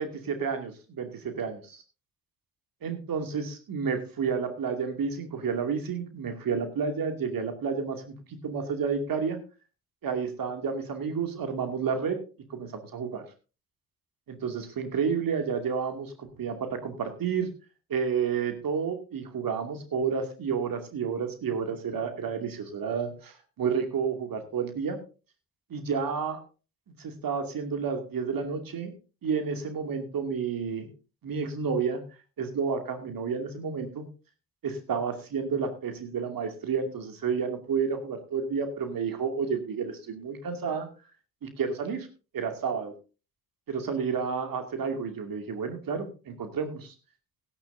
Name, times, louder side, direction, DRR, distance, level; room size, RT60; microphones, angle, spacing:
voice 1, 0.0-1.6 2.8-9.4 10.0-12.2 12.5-13.2 14.3-17.5 17.9-25.0 25.7-26.4 26.9-28.9 29.2-30.9 31.2-32.0 32.4-34.1 34.6-40.9 41.4-42.1 42.3-42.9 43.7-46.9, right 6 dB, 45° right, 6 dB, 2.6 m, -30 dB
16.5 x 11.0 x 2.7 m, 0.33 s
figure-of-eight pair, 40°, 47 cm